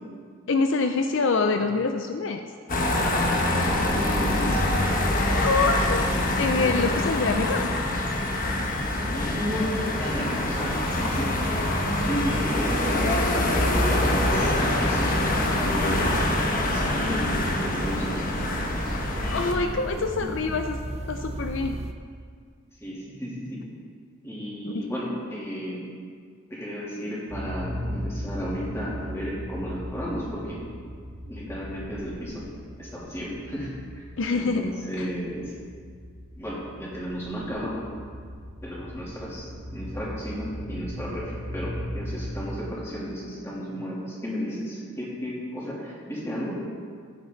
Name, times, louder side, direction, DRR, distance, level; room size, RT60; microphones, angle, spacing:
voice 1, 0.5-2.5 5.2-7.7 15.8-15.9 19.3-20.8 21.1-21.8 24.6-24.9 34.2-34.7 35.0-35.1, left 4 dB, 60° left, 6 dB, 0.5 m, -26 dB
sound 1, 2.7-19.5, left 1 dB, 40° left, 1.2 m, -25 dB
voice 2, 3.0-4.7 8.8-9.7 10.0-11.3 12.0-13.1 13.4-15.2 15.7-16.3 16.5-18.4 22.8-23.6 24.2-25.8 26.5-30.6 31.3-32.5 32.8-34.0 34.3-35.5 36.4-37.8 38.6-46.5, equal, 10° left, -7 dB, 3.0 m, -33 dB
sound 2, 10.1-21.9, right 2 dB, 30° right, 0.5 m, -36 dB
sound 3, 27.3-43.0, equal, 45° right, 1.7 m, -37 dB
15.5 x 9.7 x 3.9 m, 2.1 s
head